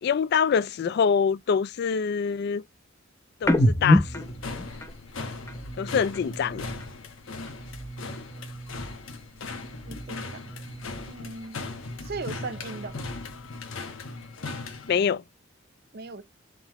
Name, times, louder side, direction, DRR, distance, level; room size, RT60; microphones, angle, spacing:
voice 1, 0.0-2.6 3.4-4.3 5.8-6.7 14.9-15.2, left 6 dB, 55° left, 0.3 m, -25 dB
sound 1, 3.4-7.0 7.3-9.1 9.4-11.3 11.6-13.5, left 1 dB, 15° left, 0.8 m, -30 dB
sound 2, 4.2-15.0, left 3 dB, 80° left, 1.0 m, -39 dB
voice 2, 9.9-10.2 11.1-11.6 12.0-13.0 15.9-16.2, right 3 dB, 50° right, 0.6 m, -37 dB
3.8 x 3.2 x 2.9 m
head